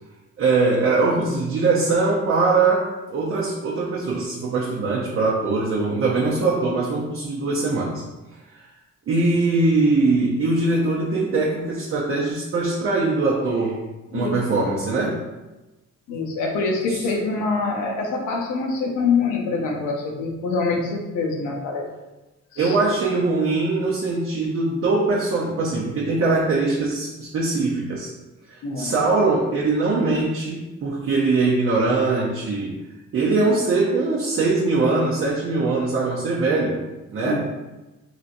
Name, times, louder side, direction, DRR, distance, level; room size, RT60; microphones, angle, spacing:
voice 1, 0.4-8.0 9.1-13.8 14.1-15.2 16.9-17.0 22.6-28.1 28.5-32.8 33.1-36.8 37.1-37.4, right 3 dB, 45° right, -4 dB, 0.6 m, -22 dB
voice 2, 14.1-14.7 16.1-21.8 22.5-22.8 28.6-28.9 37.2-37.4, left 4 dB, 85° left, 0 dB, 0.7 m, -25 dB
2.9 x 2.6 x 2.5 m, 1.1 s
cardioid pair, 90°, 30 cm